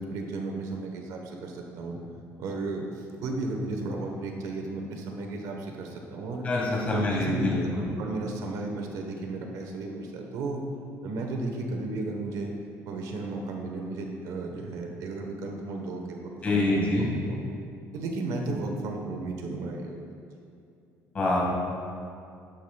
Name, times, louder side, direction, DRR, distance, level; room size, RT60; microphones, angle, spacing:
voice 1, 0.0-2.0 2.4-6.5 6.9-10.6 11.0-12.5 12.8-17.4 17.9-20.2, right 2 dB, 75° right, 2 dB, 1.1 m, -34 dB
voice 2, 6.4-7.9 16.4-17.1 21.1-21.4, left 2 dB, 25° left, -4 dB, 1.8 m, -25 dB
12.0 x 8.9 x 2.3 m, 2.5 s
cardioid pair, 180°, 6 cm